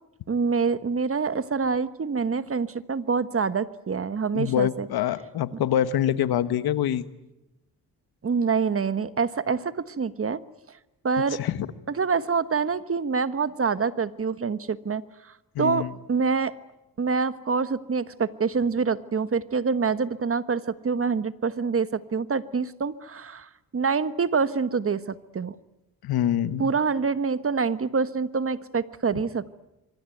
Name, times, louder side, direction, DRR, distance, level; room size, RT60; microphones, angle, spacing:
voice 1, 0.3-4.9 8.2-10.4 10.7-10.8 11.0-11.4 11.9-16.5 17.0-25.5 26.6-29.6, right 5 dB, 40° right, 14 dB, 1.4 m, -26 dB
voice 2, 4.3-7.0 11.4-11.6 15.5-15.9 26.0-26.7, left 11 dB, 85° left, 13 dB, 1.4 m, -25 dB
25.5 x 24.5 x 9.2 m, 0.94 s
cardioid pair, 80°, 36 cm